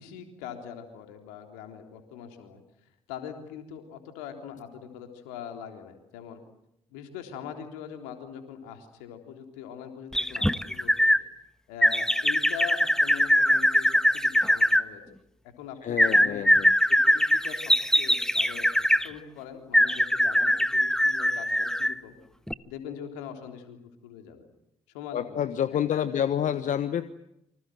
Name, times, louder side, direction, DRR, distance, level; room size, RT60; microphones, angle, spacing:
voice 1, 0.0-2.6 3.1-6.4 6.9-11.1 11.7-15.2 15.6-16.5 17.0-22.2 22.7-24.5 24.9-25.4 25.9-26.7, left 8 dB, 80° left, 5 dB, 3.6 m, -42 dB
sound 1, 10.1-11.2 11.8-14.8 16.0-19.1 19.7-22.0 22.5-22.6, equal, 5° left, 1.3 m, -22 dB
voice 2, 15.8-16.7 25.1-27.1, left 9 dB, 55° left, 13 dB, 1.2 m, -28 dB
28.0 x 25.5 x 7.8 m, 0.79 s
hypercardioid pair, 45°, 15 cm